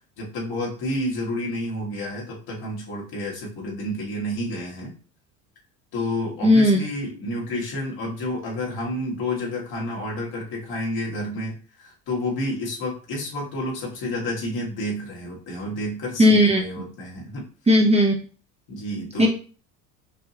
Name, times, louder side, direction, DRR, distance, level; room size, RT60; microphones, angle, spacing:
voice 1, 0.2-5.0 5.9-17.5 18.7-19.3, left 1 dB, 60° left, -2 dB, 2.0 m, -30 dB
voice 2, 6.4-6.8 16.2-16.6 17.7-18.2 19.2-19.3, equal, 15° right, 1 dB, 0.9 m, -15 dB
5.3 x 2.7 x 2.9 m, 0.39 s
supercardioid pair, 85°, 43 cm